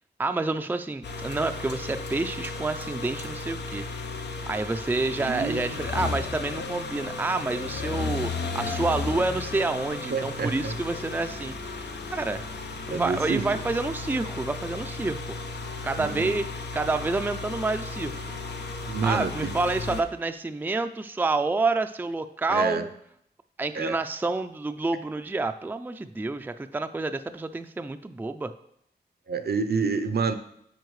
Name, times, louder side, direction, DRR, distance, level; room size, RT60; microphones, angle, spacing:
voice 1, 0.2-3.9 4.5-11.5 12.1-12.4 12.9-15.4 15.8-16.5 16.7-18.1 19.0-22.9 23.6-28.5, right 3 dB, 10° right, 9 dB, 0.3 m, -28 dB
sound 1, 1.0-20.0, left 3 dB, 85° left, 0.7 m, -34 dB
voice 2, 5.2-6.1 10.1-10.7 12.9-13.6 15.9-16.3 18.9-19.6 22.5-22.9 23.7-24.0 29.3-30.4, right 4 dB, 65° right, 9 dB, 0.6 m, -29 dB
9.3 x 4.5 x 3.2 m, 0.71 s
cardioid pair, 65°, 17 cm